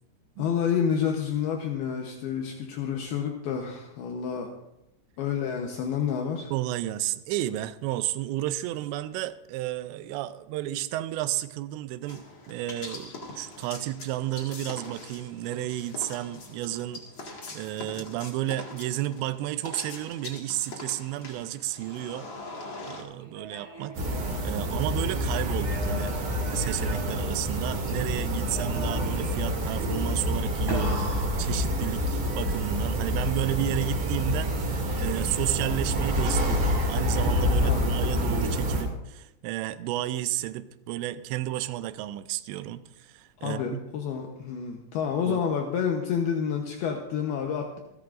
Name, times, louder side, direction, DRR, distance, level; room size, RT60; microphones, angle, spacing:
voice 1, 0.4-4.5 5.2-6.5 37.6-37.9 43.4-47.8, left 7 dB, 70° left, 2 dB, 2.7 m, -29 dB
voice 2, 6.5-13.1 13.4-17.0 17.5-22.3 22.8-23.9 24.4-26.2 26.5-31.1 31.4-43.8 45.3-45.4, right 14 dB, 85° right, 12 dB, 2.9 m, -32 dB
sound 1, 12.1-23.0, left 2 dB, 50° left, 1.5 m, -43 dB
sound 2, 23.2-25.1 25.5-27.9 28.4-29.3 30.7-32.3 35.6-36.3, equal, 5° right, 4.2 m, -39 dB
sound 3, 23.9-38.8, equal, 50° right, 3.4 m, -27 dB
27.5 x 11.0 x 2.5 m, 0.88 s
omnidirectional pair, 5.0 m